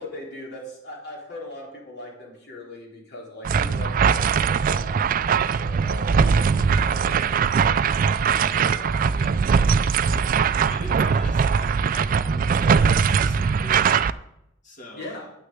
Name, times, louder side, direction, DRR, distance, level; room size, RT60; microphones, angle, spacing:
voice 1, 0.0-9.0 9.9-10.2 14.9-15.3, left 2 dB, 55° left, -2 dB, 3.7 m, -40 dB
sound 1, 3.4-14.1, right 6 dB, 45° right, 0.3 m, -21 dB
voice 2, 9.1-9.7 10.5-14.0 14.6-15.1, equal, 40° left, 1 dB, 2.6 m, -41 dB
9.1 x 6.5 x 8.2 m, 0.83 s
head